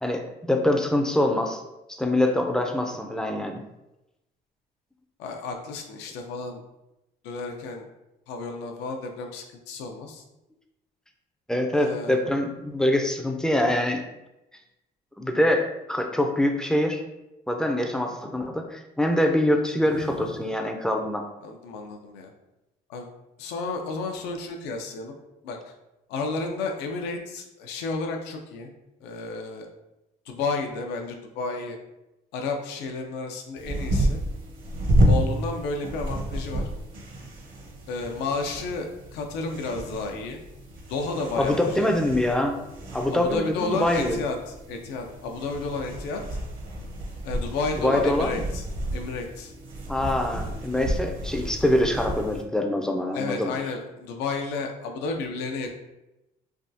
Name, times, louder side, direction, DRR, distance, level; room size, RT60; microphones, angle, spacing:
voice 1, 0.0-1.6 1.9-3.6 11.5-14.0 15.2-17.0 17.5-21.2 41.4-42.6 42.9-44.2 47.8-48.4 49.9-53.5, left 1 dB, 5° left, 3 dB, 0.3 m, -24 dB
voice 2, 5.2-6.6 7.2-7.9 8.3-10.2 11.7-12.2 19.9-20.3 21.4-22.3 22.9-23.1 23.4-25.1 25.4-25.6 26.1-28.7 29.0-29.7 30.3-31.8 32.3-34.2 35.1-36.7 37.9-40.4 40.9-41.9 43.1-46.2 47.2-48.6 48.9-49.5 53.1-55.7, left 3 dB, 90° left, 4 dB, 0.5 m, -32 dB
sound 1, 33.6-52.4, right 1 dB, 55° right, 0.7 m, -30 dB
3.4 x 2.3 x 2.6 m, 0.94 s
cardioid pair, 110°, 17 cm